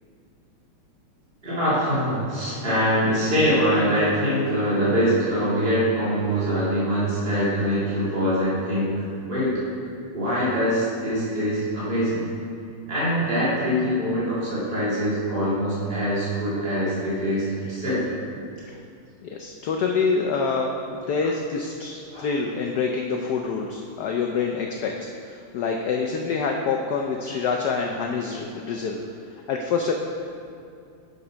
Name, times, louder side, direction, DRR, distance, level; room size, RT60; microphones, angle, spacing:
voice 1, 1.4-8.9 9.3-9.6 10.1-12.2 12.9-18.0 22.1-22.3, equal, 25° right, -10 dB, 2.4 m, -23 dB
voice 2, 10.2-10.6 18.6-18.8 19.2-29.0 29.3-29.9, left 5 dB, 80° left, 1 dB, 0.9 m, -26 dB
7.0 x 6.5 x 5.0 m, 2.5 s
omnidirectional pair, 2.3 m